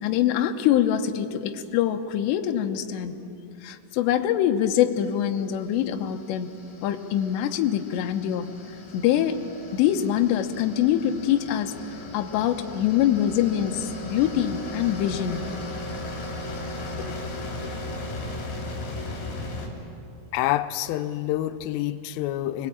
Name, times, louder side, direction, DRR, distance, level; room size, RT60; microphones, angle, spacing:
voice 1, 0.0-3.2 3.6-6.5 6.8-8.5 8.9-9.4 9.7-11.7 12.1-15.4 17.0-17.7, left 10 dB, 75° left, 5 dB, 3.0 m, -24 dB
sound 1, 5.0-19.7, left 2 dB, 45° left, 4.6 m, -37 dB
voice 2, 20.3-22.7, left 14 dB, 90° left, 10 dB, 3.3 m, -27 dB
25.5 x 20.5 x 8.7 m, 2.5 s
omnidirectional pair, 5.6 m